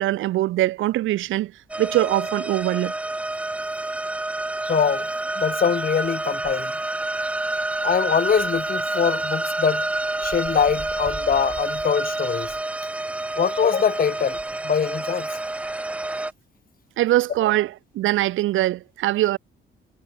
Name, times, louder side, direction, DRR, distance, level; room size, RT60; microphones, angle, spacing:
voice 1, 0.0-1.5 1.8-2.9 17.0-19.4, right 15 dB, 85° right, 1.2 m, -22 dB
sound 1, 1.7-16.3, right 2 dB, 5° right, 0.3 m, -28 dB
voice 2, 4.7-5.1 5.4-6.7 7.8-9.9 10.2-12.5 13.4-14.4 14.6-15.3, left 7 dB, 45° left, 2.1 m, -23 dB
cardioid pair, 90°, 20 cm